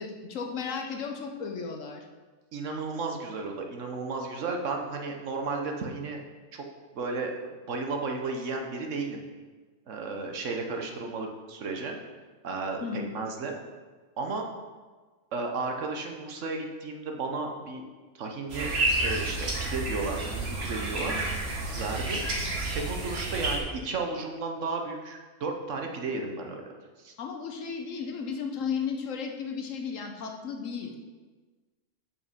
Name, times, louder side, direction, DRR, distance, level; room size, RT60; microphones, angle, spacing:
voice 1, 0.0-2.1 12.8-13.1 21.0-21.3 27.2-30.9, left 6 dB, 70° left, 3 dB, 1.2 m, -34 dB
voice 2, 2.5-6.2 6.5-6.6 6.9-9.2 9.9-12.0 12.4-13.6 14.2-14.5 15.3-17.8 18.1-18.7 19.0-21.1 21.7-22.2 22.7-26.7 27.0-27.1, right 3 dB, 65° right, 2 dB, 1.3 m, -33 dB
sound 1, 18.5-23.6, right 2 dB, 50° right, 1.5 m, -30 dB
6.8 x 6.0 x 5.1 m, 1.4 s
omnidirectional pair, 1.4 m